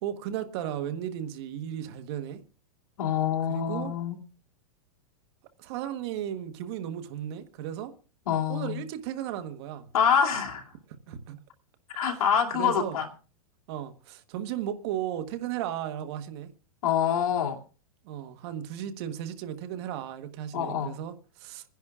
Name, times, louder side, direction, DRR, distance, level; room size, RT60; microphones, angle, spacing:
voice 1, 0.0-2.4 3.5-3.9 5.6-7.9 8.5-9.9 11.1-11.4 12.1-12.2 12.5-13.0 13.7-16.5 18.0-21.6, right 10 dB, 45° right, 1.2 m, -35 dB
voice 2, 3.0-4.2 8.3-8.8 9.9-10.7 11.9-13.1 16.8-17.5 20.5-20.9, left 8 dB, 85° left, 2.7 m, -26 dB
27.5 x 10.5 x 2.4 m
supercardioid pair, 155°, 18 cm